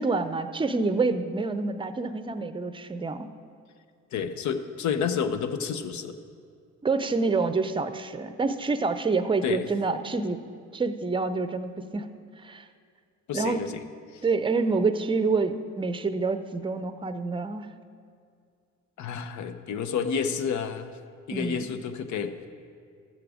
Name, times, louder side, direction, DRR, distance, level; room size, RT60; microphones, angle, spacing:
voice 1, 0.0-3.3 6.8-10.4 10.7-12.1 12.4-12.7 13.3-13.6 14.2-17.7 21.3-21.7, right 4 dB, 15° right, 10 dB, 0.6 m, -27 dB
voice 2, 4.1-6.2 9.4-9.7 13.3-13.8 14.1-14.2 19.0-21.0 21.3-22.4, left 6 dB, 70° left, 10 dB, 0.8 m, -30 dB
13.5 x 7.6 x 4.9 m, 2.3 s
cardioid pair, 90°, 30 cm